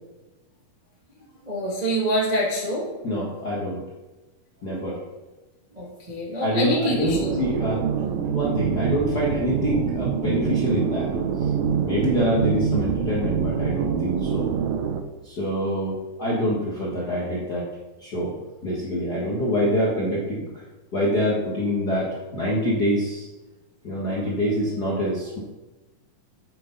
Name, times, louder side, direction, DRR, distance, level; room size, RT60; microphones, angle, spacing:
voice 1, 1.4-2.9 5.7-7.3, equal, 30° right, -4 dB, 0.7 m, -25 dB
voice 2, 3.0-3.8 4.6-5.0 6.4-11.1 11.4-11.5 11.8-14.5 15.2-17.7 18.0-18.3 18.6-20.6 20.9-23.3 23.8-25.4, equal, 50° left, -5 dB, 1.1 m, -26 dB
sound 1, 7.0-15.0, right 7 dB, 75° right, 1.7 m, -25 dB
9.4 x 8.5 x 3.9 m, 1.1 s
omnidirectional pair, 4.0 m